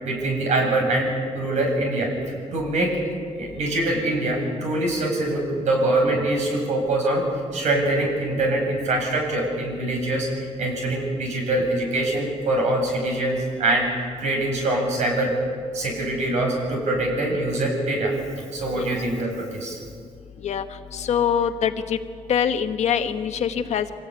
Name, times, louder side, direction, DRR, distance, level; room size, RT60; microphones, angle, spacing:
voice 1, 0.0-2.1 2.5-2.9 3.4-7.2 7.5-10.3 10.6-13.9 14.2-15.4 15.7-18.1 18.5-19.8, right 2 dB, 70° right, 1 dB, 7.7 m, -24 dB
voice 2, 20.9-22.0 22.3-24.0, left 8 dB, 65° left, 7 dB, 1.4 m, -24 dB
25.5 x 18.0 x 9.6 m, 2.1 s
wide cardioid pair, 155°, 12 cm